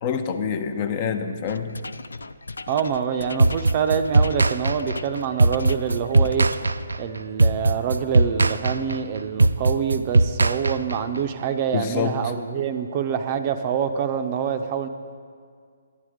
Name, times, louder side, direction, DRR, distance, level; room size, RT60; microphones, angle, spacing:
voice 1, 0.0-1.8 11.7-12.3, left 6 dB, 35° left, 8 dB, 0.7 m, -26 dB
sound 1, 1.4-6.9, left 3 dB, 75° left, 0.3 m, -38 dB
voice 2, 2.7-6.5 7.0-14.9, right 7 dB, 35° right, 8 dB, 0.6 m, -26 dB
sound 2, 3.4-11.2, right 3 dB, 80° right, 0.4 m, -20 dB
11.0 x 9.2 x 5.0 m, 2.1 s
figure-of-eight pair, 140°, 0 cm